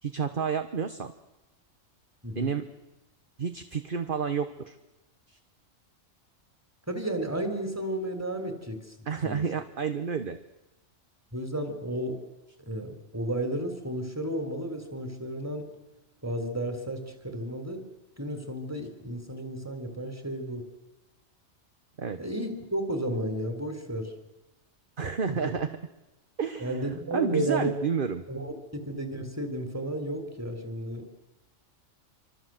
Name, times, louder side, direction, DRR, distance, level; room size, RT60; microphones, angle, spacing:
voice 1, 0.0-1.1 2.3-2.7 3.4-4.7 5.3-5.4 9.1-10.4 22.0-22.2 25.0-25.7 26.4-28.2, right 6 dB, 40° right, 8 dB, 1.3 m, -30 dB
voice 2, 2.2-2.6 6.9-9.4 11.3-12.2 12.6-15.7 16.2-17.9 18.2-20.6 22.2-24.1 25.3-25.5 26.6-27.7 28.3-31.1, right 1 dB, 10° right, 7 dB, 3.9 m, -33 dB
27.5 x 25.5 x 7.8 m, 1.0 s
omnidirectional pair, 1.4 m